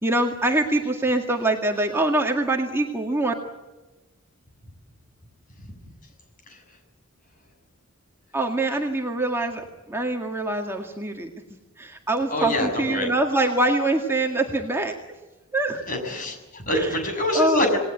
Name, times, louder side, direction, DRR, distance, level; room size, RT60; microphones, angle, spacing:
voice 1, 0.0-3.3 8.3-11.3 11.8-15.0 15.5-15.8 16.7-16.9 17.3-17.6, right 2 dB, 10° right, 2 dB, 1.9 m, -24 dB
voice 2, 12.3-13.1 15.9-17.8, left 1 dB, 35° left, 4 dB, 6.7 m, -26 dB
28.0 x 19.5 x 8.1 m, 1.1 s
head